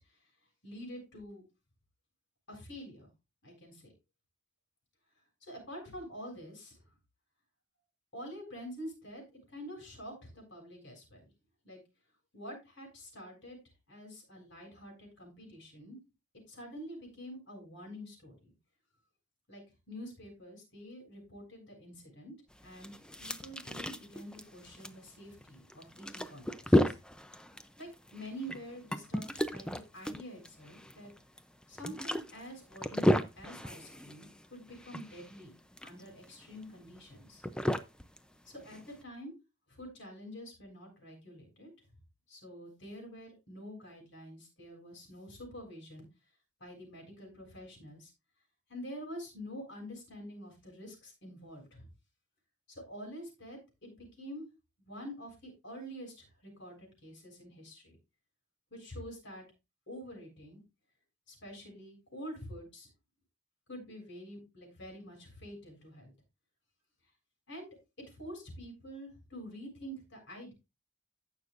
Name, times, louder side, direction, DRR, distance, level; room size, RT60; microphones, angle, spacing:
voice 1, 0.6-1.4 2.5-3.1 3.4-3.9 5.4-6.9 8.1-11.2 11.6-11.8 12.3-13.6 13.9-16.0 16.5-18.5 19.5-22.3 22.6-22.9 23.2-26.9 27.8-31.1 31.7-37.4 38.4-39.3 39.7-41.7 42.3-46.0 46.6-48.1 48.7-51.9 52.7-54.4 54.8-58.0 58.7-59.4 59.9-60.6 61.3-62.9 63.7-66.1 67.5-67.7 68.1-70.5, equal, 55° left, 0 dB, 6.8 m, -47 dB
sound 1, 22.5-39.0, left 1 dB, 5° left, 0.5 m, -34 dB
16.0 x 6.4 x 2.5 m, 0.25 s
head